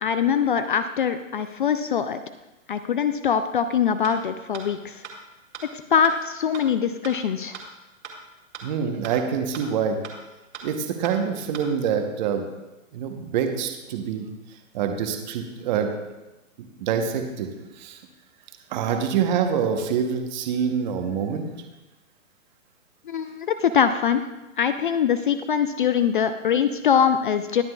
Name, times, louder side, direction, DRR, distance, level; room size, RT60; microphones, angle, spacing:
voice 1, 0.0-2.2 2.7-5.0 5.7-7.6 23.1-24.2 24.6-27.6, left 7 dB, 40° left, 10 dB, 0.4 m, -23 dB
sound 1, 4.0-4.1 4.5-4.6 5.0-5.1 5.5-5.6 6.0-6.1 6.5-6.6 7.0-7.1 7.5-7.6 8.0-8.1 8.5-8.6 9.0-9.1 9.5-9.6 10.0-10.1 10.5-10.6 11.0-11.1 11.5-11.6, right 8 dB, 60° right, 2.2 m, -38 dB
voice 2, 8.6-10.0 10.6-12.5 12.9-14.3 14.7-15.9 16.8-17.5 17.8-18.0 18.7-21.5, right 7 dB, 35° right, 5 dB, 1.0 m, -25 dB
21.0 x 7.3 x 2.3 m, 1.0 s
hypercardioid pair, 150°, 39 cm